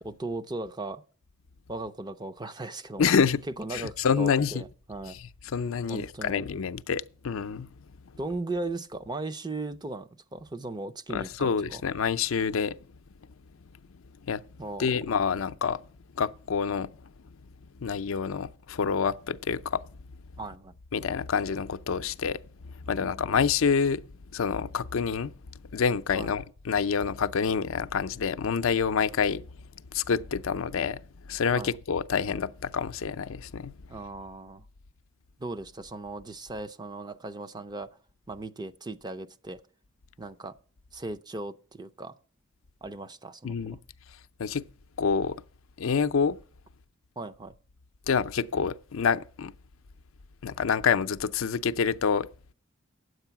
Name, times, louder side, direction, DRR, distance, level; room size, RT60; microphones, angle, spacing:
voice 1, 0.0-1.0 1.7-3.1 3.6-5.2 5.9-6.4 8.2-11.8 14.6-14.9 20.4-20.7 22.8-23.3 26.1-26.3 31.5-31.7 33.9-34.6 35.4-37.9 38.3-39.6 40.2-40.5 40.9-42.1 42.8-43.6 47.2-47.5, right 2 dB, 20° right, 0.6 m, -37 dB
voice 2, 3.0-3.4 3.7-4.6 5.1-7.7 11.1-12.8 14.2-14.4 14.8-15.8 16.2-16.9 17.8-19.8 20.9-22.4 22.9-24.0 24.3-25.3 25.7-29.5 29.9-31.0 31.3-33.8 43.4-43.8 44.4-44.6 45.0-45.4 45.8-46.4 48.1-49.5 50.4-52.3, left 6 dB, 85° left, 0.5 m, -27 dB
9.8 x 8.0 x 5.8 m
head